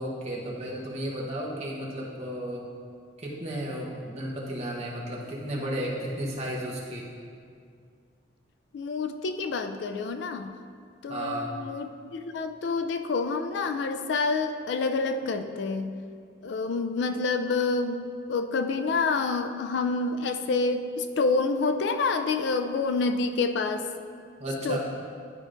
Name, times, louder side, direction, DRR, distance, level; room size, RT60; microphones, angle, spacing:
voice 1, 0.0-2.7 3.2-7.1 11.1-11.5 24.4-24.8, right 1 dB, 35° right, -4 dB, 1.0 m, -33 dB
voice 2, 8.7-10.5 11.0-15.9 16.4-18.0 18.3-23.8 24.6-24.8, left 4 dB, 65° left, 8 dB, 0.3 m, -28 dB
10.5 x 4.9 x 2.5 m, 2.2 s
head